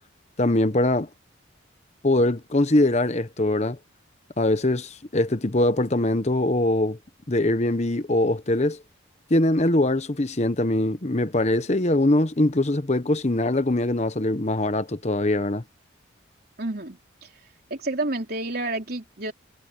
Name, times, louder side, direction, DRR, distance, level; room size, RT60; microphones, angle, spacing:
voice 1, 0.4-1.1 2.0-3.8 4.4-7.0 7.3-8.8 9.3-15.6, left 1 dB, 35° left, 1.0 m, -22 dB
voice 2, 16.6-17.0 17.7-19.3, right 2 dB, 50° right, 3.8 m, -29 dB
head